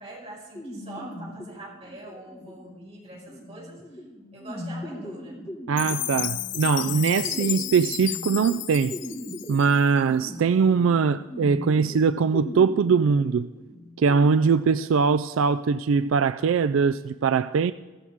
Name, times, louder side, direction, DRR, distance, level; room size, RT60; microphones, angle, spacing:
voice 1, 0.0-4.0 4.3-5.4, right 2 dB, 30° right, 5.3 m, -43 dB
sound 1, 0.6-14.3, equal, 15° left, 1.7 m, -39 dB
voice 2, 5.7-8.9 9.5-13.5 14.0-17.7, right 5 dB, 80° right, 0.3 m, -22 dB
Chime, 5.8-10.0, left 16 dB, 60° left, 0.4 m, -32 dB
15.5 x 14.5 x 3.6 m
head